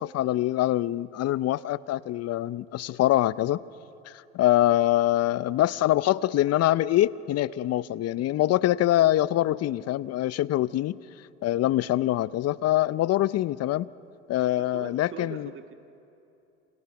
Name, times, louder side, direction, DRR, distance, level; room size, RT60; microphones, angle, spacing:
voice 1, 0.0-3.6 4.1-10.9 11.4-13.9 14.3-15.5, left 14 dB, 45° left, 18 dB, 0.7 m, -24 dB
voice 2, 14.4-15.7, right 6 dB, 35° right, 6 dB, 2.0 m, -42 dB
28.0 x 27.0 x 6.0 m, 2.8 s
hypercardioid pair, 75°, 34 cm